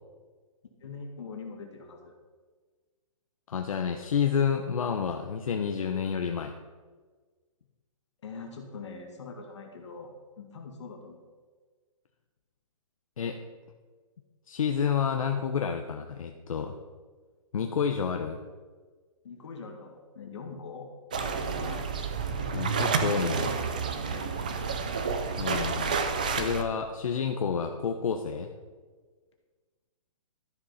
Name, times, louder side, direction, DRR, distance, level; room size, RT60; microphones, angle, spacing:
voice 1, 0.8-2.1 8.2-11.2 19.2-20.9 21.2-21.8 24.0-24.4, left 4 dB, 55° left, 2 dB, 2.0 m, -43 dB
voice 2, 3.5-6.5 13.2-13.4 14.5-16.8 17.5-18.4 22.3-23.5 25.4-26.0 26.3-28.5, left 7 dB, 70° left, 5 dB, 1.0 m, -29 dB
sound 1, 21.1-26.6, right 5 dB, 15° right, 0.3 m, -30 dB
13.0 x 7.1 x 5.8 m, 1.4 s
hypercardioid pair, 180°, 18 cm